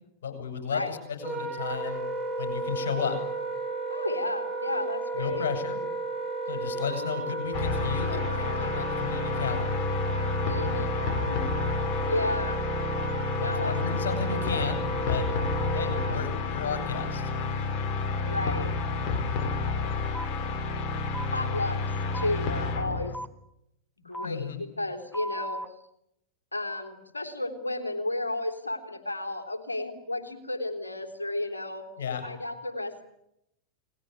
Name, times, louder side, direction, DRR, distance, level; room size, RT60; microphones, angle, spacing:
voice 1, 0.2-2.1 2.4-3.2 5.2-5.8 6.5-9.8 13.4-15.3 15.7-17.3 24.2-24.6 32.0-32.2, left 7 dB, 60° left, 7 dB, 7.7 m, -33 dB
Wind instrument woodwind instrument, 1.2-16.1, right 3 dB, 10° right, 7.2 m, -33 dB
voice 2, 3.9-5.5 10.5-10.9 11.3-11.4 12.1-12.6 13.4-13.8 14.1-14.7 15.7-16.0 18.2-18.7 19.3-19.5 21.3-21.8 22.1-23.2 24.0-25.6 26.5-31.9 32.2-33.0, left 2 dB, 80° left, 6 dB, 3.5 m, -33 dB
sound 1, 7.5-23.1, left 4 dB, 40° left, 2.9 m, -30 dB
sound 2, 20.1-20.3 21.1-21.3 22.1-22.3 23.1-23.3 24.1-24.3 25.1-25.7, right 1 dB, 5° left, 1.0 m, -36 dB
30.0 x 20.5 x 8.8 m, 0.81 s
figure-of-eight pair, 90°, 0 cm